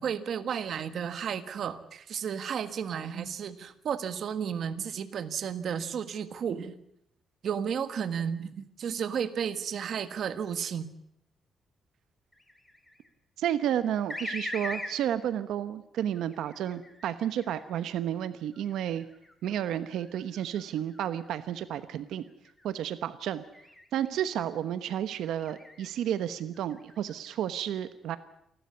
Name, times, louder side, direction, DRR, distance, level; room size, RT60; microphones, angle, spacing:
voice 1, 0.0-6.8 7.4-10.9, right 7 dB, 50° right, 11 dB, 1.5 m, -33 dB
sound 1, 12.3-13.1 14.1-15.0 16.0-17.9 18.5-21.8 22.3-22.7 23.5-24.5 25.2-25.9 26.4-27.3, left 1 dB, 5° left, 2.5 m, -42 dB
voice 2, 13.4-19.1 19.4-22.3 22.6-23.4 23.9-28.2, right 10 dB, 85° right, 12 dB, 1.1 m, -31 dB
28.5 x 12.5 x 9.5 m, 0.77 s
cardioid pair, 160°, 0 cm